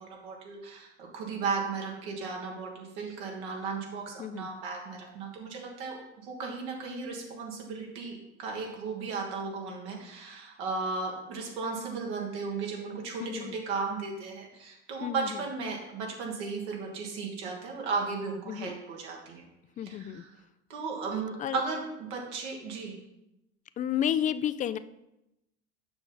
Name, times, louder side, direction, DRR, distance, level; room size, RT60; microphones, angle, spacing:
voice 1, 0.0-19.5 19.8-20.3 20.7-23.0, right 4 dB, 75° right, 0 dB, 1.8 m, -35 dB
voice 2, 4.2-4.5 13.2-13.6 15.0-15.4 18.5-18.8 19.8-20.2 21.4-21.6 23.8-24.8, left 10 dB, 25° left, 14 dB, 0.3 m, -31 dB
6.9 x 5.6 x 3.9 m, 0.88 s
hypercardioid pair, 70°, 34 cm